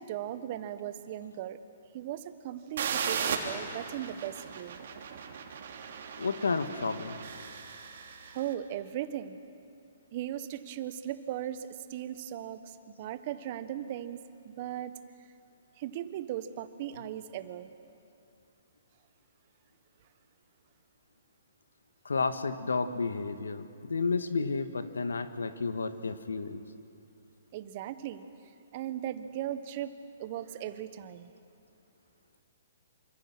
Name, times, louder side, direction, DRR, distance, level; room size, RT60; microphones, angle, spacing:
voice 1, 0.0-1.6 1.9-4.8 8.3-9.4 10.1-14.9 15.8-17.7 27.5-28.2 28.7-31.3, right 11 dB, 45° right, 11 dB, 1.4 m, -38 dB
sound 1, 2.8-8.4, right 6 dB, 60° right, 3.1 m, -37 dB
voice 2, 6.2-7.2 22.0-26.6, left 4 dB, 85° left, 9 dB, 1.6 m, -31 dB
27.0 x 25.5 x 6.2 m, 2.5 s
hypercardioid pair, 130°, 0 cm